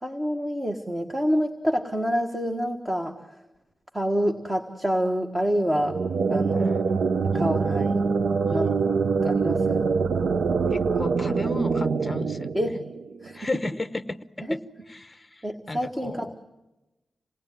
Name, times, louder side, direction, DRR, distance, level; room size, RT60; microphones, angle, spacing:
voice 1, 0.0-3.2 3.9-6.0 6.3-6.8 7.2-8.0 8.5-8.7 9.2-9.8 12.5-12.8 13.2-13.5 14.4-14.6 15.4-16.4, equal, 15° right, 5 dB, 1.5 m, -27 dB
sound 1, 5.7-13.3, right 5 dB, 75° right, 0.8 m, -24 dB
voice 2, 7.3-7.9 10.7-12.5 13.3-14.6 14.9-16.4, left 2 dB, 20° left, 11 dB, 0.9 m, -34 dB
27.5 x 19.0 x 9.2 m, 1.0 s
wide cardioid pair, 165°, 0 cm